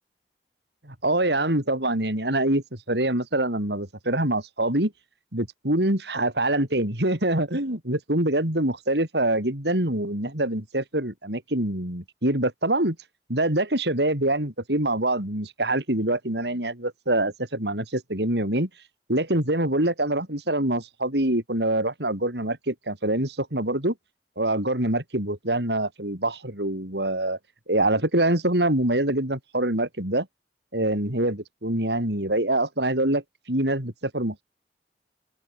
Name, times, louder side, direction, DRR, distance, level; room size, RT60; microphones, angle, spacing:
voice 1, 0.8-4.9 5.3-13.0 13.3-18.7 19.1-23.9 24.4-27.4 27.7-30.3 30.7-33.2 33.5-34.4, right 1 dB, 75° right, 5.7 m, -25 dB
open air
head